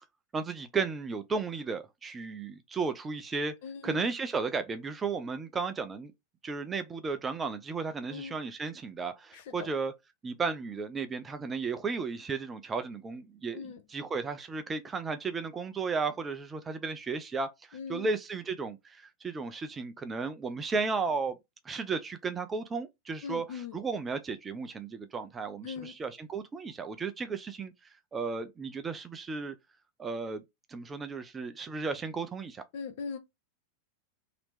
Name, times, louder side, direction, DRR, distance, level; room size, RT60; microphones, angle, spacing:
voice 1, 0.3-3.5 3.8-6.1 6.4-9.9 10.2-21.4 21.6-27.7 28.1-29.5 30.0-30.4 30.7-32.6, right 4 dB, 20° right, 0.5 m, -34 dB
voice 2, 3.6-4.1 8.1-8.4 9.3-9.7 13.5-13.8 17.7-18.1 23.2-23.8 25.6-26.0 32.7-33.2, left 6 dB, 55° left, 0.8 m, -40 dB
3.0 x 2.9 x 3.3 m
figure-of-eight pair, 90°, 0 cm